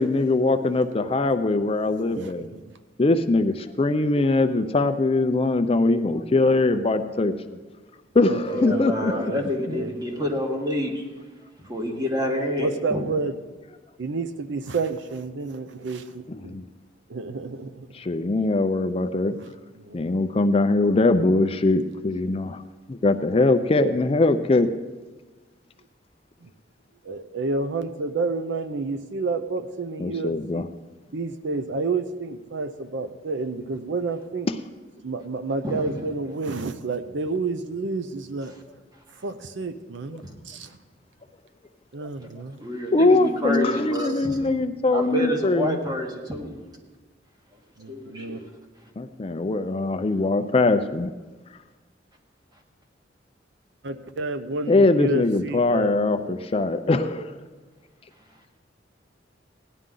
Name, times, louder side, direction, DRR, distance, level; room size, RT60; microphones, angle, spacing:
voice 1, 0.0-2.5 3.0-7.6 8.1-9.3 9.7-9.8 16.3-16.6 17.9-19.3 19.9-22.6 22.9-24.7 30.0-30.7 34.5-34.6 42.9-45.8 49.0-51.1 54.7-57.3, left 2 dB, 30° left, 9 dB, 0.4 m, -22 dB
voice 2, 2.1-2.6 7.5-7.6 8.3-10.4 11.9-12.0 12.6-13.4 14.0-16.6 17.1-17.9 19.0-19.5 19.8-20.0 27.0-30.6 31.1-34.5 35.0-38.5 39.2-40.7 41.9-42.6 47.8-48.4 53.8-56.4, right 3 dB, 70° right, 10 dB, 0.6 m, -30 dB
voice 3, 8.5-11.0 11.6-13.0 35.6-36.0 42.6-44.4 44.9-46.6 47.9-48.5, equal, 20° right, 1 dB, 1.6 m, -28 dB
17.5 x 11.0 x 3.8 m, 1.3 s
head